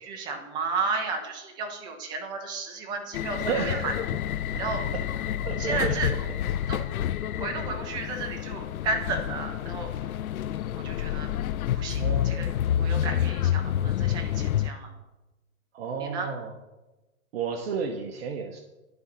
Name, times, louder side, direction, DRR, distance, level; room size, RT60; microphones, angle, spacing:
voice 1, 0.0-3.9 4.6-4.8 5.6-6.1 6.7-6.9 7.4-9.9 10.7-12.5 12.8-14.9 16.0-16.3, right 4 dB, 10° right, 4 dB, 0.5 m, -33 dB
sound 1, 3.1-14.7, left 11 dB, 80° left, 0.5 m, -28 dB
voice 2, 3.4-3.9 5.4-6.2 12.0-12.3 15.7-16.5 17.3-18.6, right 5 dB, 45° right, 4 dB, 0.9 m, -32 dB
10.5 x 3.9 x 5.7 m, 1.1 s
hypercardioid pair, 140°, 42 cm